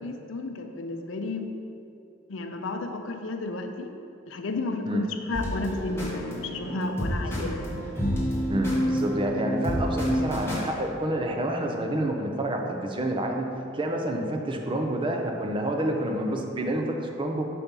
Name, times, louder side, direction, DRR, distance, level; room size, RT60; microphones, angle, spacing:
voice 1, 0.0-1.5 2.3-3.9 4.3-7.6, left 2 dB, 75° left, 5 dB, 0.5 m, -32 dB
sound 1, 5.3-10.7, equal, 15° left, 1.3 m, -29 dB
voice 2, 8.5-13.5 13.7-17.5, right 1 dB, 25° right, 2 dB, 0.5 m, -28 dB
5.8 x 4.2 x 5.2 m, 2.7 s
head